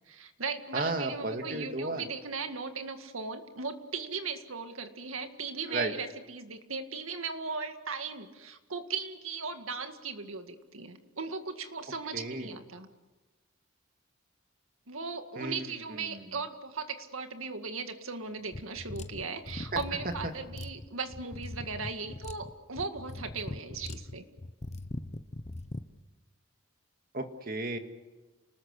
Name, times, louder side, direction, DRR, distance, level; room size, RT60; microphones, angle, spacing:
voice 1, 0.1-12.9 14.9-24.3, right 4 dB, 85° right, 7 dB, 2.0 m, -38 dB
voice 2, 0.7-2.1 5.7-5.9 12.1-12.6 15.4-15.7 16.0-16.3 19.7-19.8 20.2-20.3 27.1-27.8, right 2 dB, 45° right, 6 dB, 2.1 m, -34 dB
sound 1, 18.5-25.9, left 1 dB, 30° left, 0.9 m, -41 dB
29.0 x 19.5 x 8.4 m, 1.2 s
head